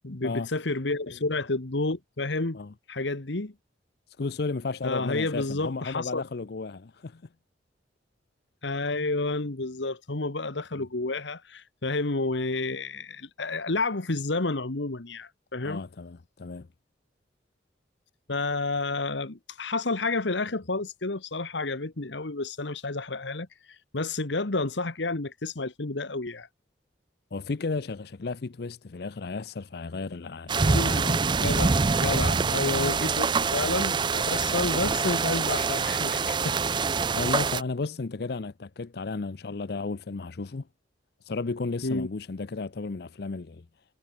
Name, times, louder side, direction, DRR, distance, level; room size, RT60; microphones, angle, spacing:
voice 1, 0.0-2.6 2.9-3.5 4.8-6.2 8.6-15.8 18.3-26.5 30.7-31.7 32.0-33.3 33.5-36.6 41.8-42.1, left 3 dB, 75° left, 1.5 m, -30 dB
voice 2, 4.2-7.2 10.7-10.9 15.6-16.7 27.3-31.1 32.7-33.0 37.1-40.7 41.3-43.7, left 3 dB, 60° left, 0.6 m, -34 dB
sound 1, 30.5-37.6, right 4 dB, 25° right, 0.4 m, -25 dB
head